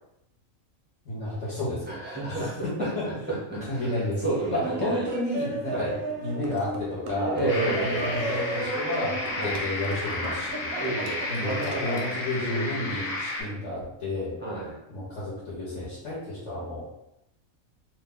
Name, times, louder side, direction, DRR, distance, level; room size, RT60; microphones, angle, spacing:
voice 1, 1.0-1.8 2.3-3.1 3.6-4.2 4.5-5.9 6.2-10.7 11.3-14.3 14.9-16.8, left 1 dB, 65° left, -7 dB, 1.1 m, -31 dB
voice 2, 1.9-3.9 4.2-5.0 5.7-5.9 7.3-8.2 9.4-9.6 10.8-12.2 12.4-12.9 14.4-14.8, right 2 dB, 15° right, -7 dB, 0.4 m, -31 dB
Laughter, 4.1-12.2, right 2 dB, 65° right, 0.7 m, -35 dB
sound 1, 7.5-13.4, left 2 dB, 90° left, 1.2 m, -32 dB
2.7 x 2.2 x 3.5 m, 0.86 s
omnidirectional pair, 1.4 m